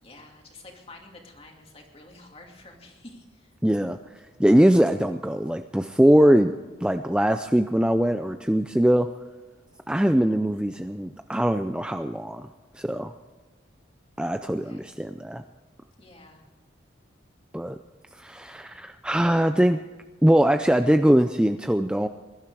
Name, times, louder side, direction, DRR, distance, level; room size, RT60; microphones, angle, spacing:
voice 1, 0.0-3.5 14.6-15.0 16.0-16.4, left 2 dB, 30° left, 2 dB, 2.6 m, -49 dB
voice 2, 3.6-4.0 4.4-6.5 6.8-9.1 9.9-12.5 12.8-13.1 14.2-15.4 17.5-17.8 18.1-19.8 20.2-22.1, equal, 5° right, 8 dB, 0.4 m, -21 dB
21.0 x 12.0 x 4.8 m, 1.3 s
head